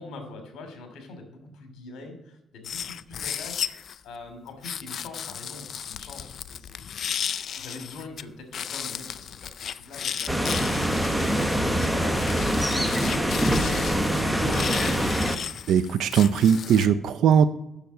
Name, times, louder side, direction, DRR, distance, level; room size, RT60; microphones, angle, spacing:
voice 1, 0.0-15.3, left 3 dB, 75° left, 5 dB, 2.6 m, -43 dB
sound 1, 2.6-4.0 4.6-8.2 8.5-16.9, left 8 dB, 60° left, 0.4 m, -35 dB
sound 2, 10.3-15.4, equal, ahead, 1.1 m, -24 dB
voice 2, 15.7-17.5, right 8 dB, 75° right, 11 dB, 0.4 m, -19 dB
7.0 x 6.5 x 7.6 m, 0.91 s
cardioid pair, 90°, 0 cm